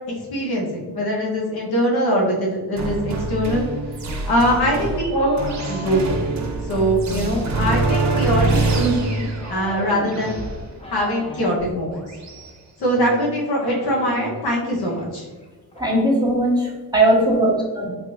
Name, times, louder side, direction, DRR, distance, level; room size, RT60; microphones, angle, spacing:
voice 1, 0.1-3.7 4.3-5.4 5.7-6.2 6.7-10.4 10.9-12.1 12.8-15.3, equal, 80° left, -2 dB, 0.9 m, -22 dB
sound 1, 2.8-12.5, right 2 dB, 50° right, 0.6 m, -25 dB
sound 2, 4.5-6.0 7.2-11.6 12.5-12.6 12.8-14.5 14.8-15.0 15.3-15.8, equal, 15° left, 0.8 m, -37 dB
voice 2, 15.7-17.9, right 1 dB, 10° right, -3 dB, 1.1 m, -19 dB
3.2 x 2.6 x 3.1 m, 1.3 s
cardioid pair, 75°, 37 cm